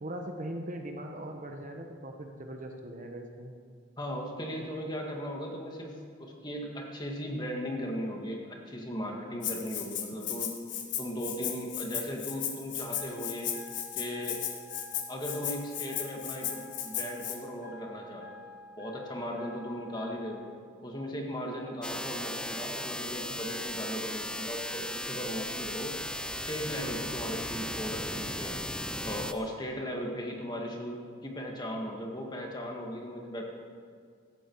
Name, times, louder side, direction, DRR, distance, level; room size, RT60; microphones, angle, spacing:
voice 1, 0.0-3.5, right 1 dB, 40° right, 3 dB, 1.1 m, -40 dB
voice 2, 4.0-5.9 6.2-10.5 11.0-13.6 13.9-14.4 15.1-18.4 18.8-20.4 20.8-26.0 26.5-28.6 29.0-33.4, equal, 20° left, 0 dB, 1.8 m, -37 dB
Rattle (instrument), 9.4-17.4, left 10 dB, 65° left, 1.5 m, -36 dB
sound 1, 13.0-20.6, left 3 dB, 45° left, 1.0 m, -49 dB
sound 2, 21.8-29.3, left 1 dB, 5° left, 0.5 m, -36 dB
16.5 x 13.5 x 4.7 m, 2.1 s
head